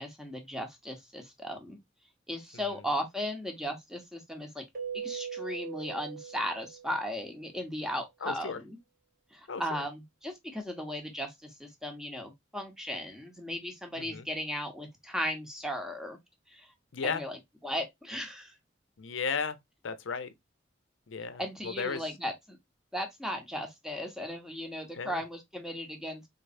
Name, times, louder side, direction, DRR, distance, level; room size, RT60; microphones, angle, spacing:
voice 1, 0.0-1.8 2.3-4.6 4.9-8.8 9.3-16.2 16.5-16.7 17.1-17.4 17.6-18.5 21.4-22.6 22.9-26.3, equal, 5° right, 0.8 m, -36 dB
Keyboard (musical), 4.8-7.3, right 8 dB, 45° right, 0.9 m, -40 dB
voice 2, 8.2-8.6 9.5-9.6 14.0-14.3 16.9-17.2 19.0-19.6 19.8-20.3 21.1-22.0 24.9-25.2, left 5 dB, 85° left, 0.6 m, -34 dB
4.1 x 3.2 x 2.6 m
head